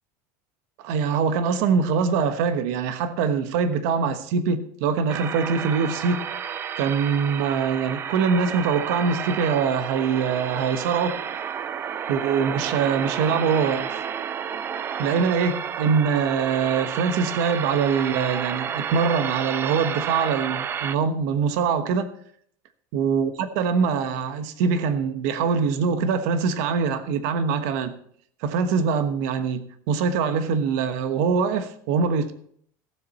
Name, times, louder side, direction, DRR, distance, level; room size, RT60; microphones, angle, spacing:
voice 1, 0.8-6.2 6.8-11.2 12.1-13.9 15.0-22.1 22.9-27.9 28.4-32.3, right 6 dB, 70° right, 1.1 m, -23 dB
sound 1, 5.1-21.0, right 8 dB, 25° right, 0.4 m, -31 dB
16.0 x 7.7 x 4.2 m
cardioid pair, 155°, 9 cm